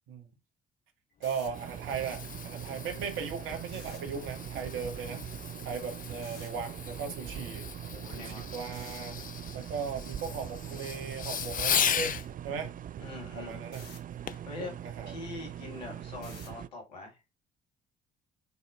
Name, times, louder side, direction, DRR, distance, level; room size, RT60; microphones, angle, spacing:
sound 1, 1.1-1.5 3.7-4.0 6.2-6.5 8.7-9.0 11.2-11.5 13.7-14.0 16.2-16.6, left 4 dB, 60° left, 3.7 m, -49 dB
voice 1, 1.2-5.2 5.6-7.7 8.2-9.2 9.5-12.1 12.4-12.7 13.3-13.9 14.6-15.1 15.7-15.9, right 6 dB, 70° right, 1.8 m, -37 dB
Fireworks, 1.3-12.3 14.3-14.5 15.1-15.2, left 8 dB, 40° left, 0.6 m, -37 dB
sound 2, 1.5-16.7, right 10 dB, 40° right, 0.5 m, -42 dB
voice 2, 7.9-8.5 13.0-13.6 14.5-14.8 15.1-17.2, left 3 dB, 90° left, 2.0 m, -43 dB
9.1 x 4.2 x 2.5 m
hypercardioid pair, 45°, 21 cm